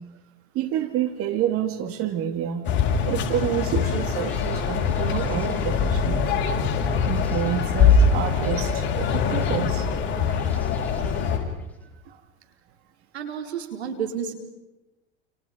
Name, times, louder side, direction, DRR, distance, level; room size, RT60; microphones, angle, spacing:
voice 1, 0.5-2.6 3.0-6.4 7.0-9.9, right 10 dB, 45° right, 7 dB, 2.7 m, -28 dB
sound 1, 2.6-11.4, left 5 dB, 35° left, 7.5 m, -23 dB
sound 2, 4.2-11.9, left 2 dB, 5° left, 4.4 m, -44 dB
voice 2, 13.1-14.3, right 7 dB, 85° right, 5 dB, 4.6 m, -31 dB
29.5 x 29.5 x 5.2 m, 1.0 s
hypercardioid pair, 105°, 32 cm